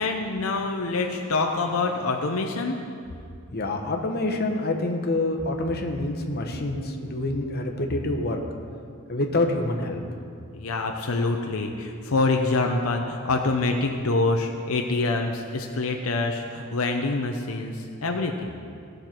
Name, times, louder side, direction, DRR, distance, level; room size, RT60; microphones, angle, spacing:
voice 1, 0.0-2.9 10.5-18.5, left 3 dB, 75° left, 3 dB, 0.7 m, -26 dB
voice 2, 3.5-8.4 9.1-10.0, left 2 dB, 45° left, 2 dB, 1.0 m, -27 dB
17.0 x 6.5 x 4.5 m, 2.4 s
head